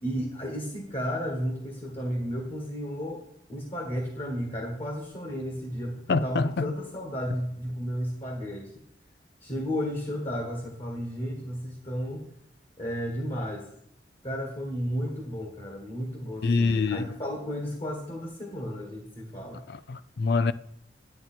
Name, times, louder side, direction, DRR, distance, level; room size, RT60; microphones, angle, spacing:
voice 1, 0.0-3.2 3.5-8.7 9.4-12.2 12.8-13.7 14.2-19.6, equal, 35° left, 1.6 m, -33 dB
voice 2, 6.1-6.7 16.4-17.2 19.7-20.5, left 4 dB, 65° left, 0.4 m, -25 dB
11.0 x 9.3 x 4.4 m
head